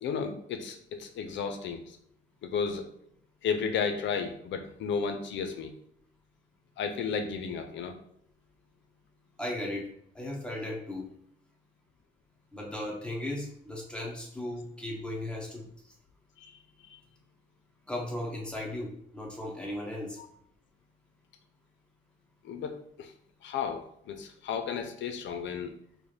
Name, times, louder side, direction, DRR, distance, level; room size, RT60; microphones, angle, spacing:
voice 1, 0.0-2.0 2.4-2.9 3.4-5.7 6.8-8.0 16.4-16.5 16.8-17.0 20.2-20.3 22.4-23.1 23.4-25.7, left 6 dB, 70° left, 7 dB, 0.5 m, -33 dB
voice 2, 9.4-9.8 10.2-11.0 12.5-15.5 17.9-18.9 19.1-20.1, left 1 dB, 5° left, -4 dB, 1.4 m, -36 dB
4.8 x 2.2 x 3.3 m, 0.69 s
cardioid pair, 90°, 20 cm